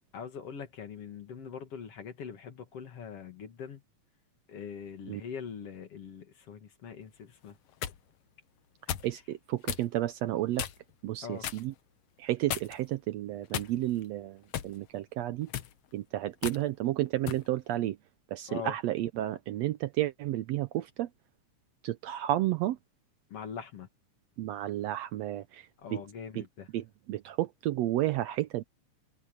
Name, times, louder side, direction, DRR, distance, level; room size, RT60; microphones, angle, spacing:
voice 1, 0.1-3.8 4.5-7.6 11.2-11.5 18.5-18.8 23.3-23.9 25.8-26.7, left 7 dB, 50° left, 2.7 m, -42 dB
sound 1, 7.4-8.0 8.9-9.1 9.7-9.9 10.6-10.9 11.4-11.7 12.5-12.9 13.5-14.0 14.5-14.8 15.4-15.7 16.4-16.6 17.3-17.5, left 11 dB, 65° left, 1.6 m, -35 dB
voice 2, 9.0-10.6 11.0-11.7 12.2-15.5 15.9-18.0 18.3-21.1 21.8-22.8 24.4-26.0 26.3-26.5 26.7-28.6, right 14 dB, 85° right, 1.5 m, -32 dB
omnidirectional pair, 3.8 m